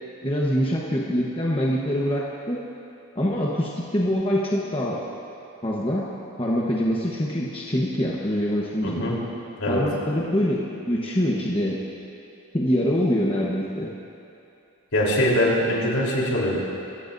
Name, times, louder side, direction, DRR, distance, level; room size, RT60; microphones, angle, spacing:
voice 1, 0.2-2.6 3.1-5.0 5.6-6.1 6.4-9.1 9.7-11.8 12.5-13.9, equal, 25° left, -4 dB, 1.2 m, -24 dB
voice 2, 14.9-16.6, left 1 dB, 70° left, -4 dB, 3.9 m, -22 dB
25.5 x 16.0 x 2.7 m, 2.7 s
head